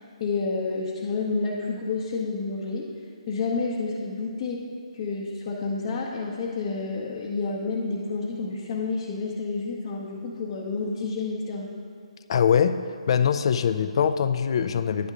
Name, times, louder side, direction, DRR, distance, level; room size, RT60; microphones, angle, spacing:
voice 1, 0.2-2.9 3.3-4.7 4.9-11.7, left 4 dB, 35° left, -4 dB, 0.8 m, -29 dB
voice 2, 12.3-12.8 13.1-15.1, left 7 dB, 50° left, 11 dB, 0.4 m, -22 dB
10.0 x 3.6 x 6.6 m, 2.2 s
hypercardioid pair, 155°, 4 cm